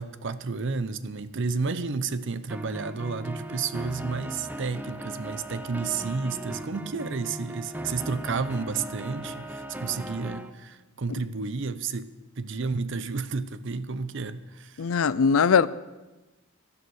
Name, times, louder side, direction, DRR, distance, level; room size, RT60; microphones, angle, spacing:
voice 1, 0.0-14.9, right 4 dB, 60° right, 0.7 m, -31 dB
sound 1, 2.5-10.5, right 1 dB, 10° right, 0.6 m, -38 dB
voice 2, 14.8-15.7, left 6 dB, 80° left, 0.5 m, -20 dB
12.0 x 11.0 x 6.4 m
head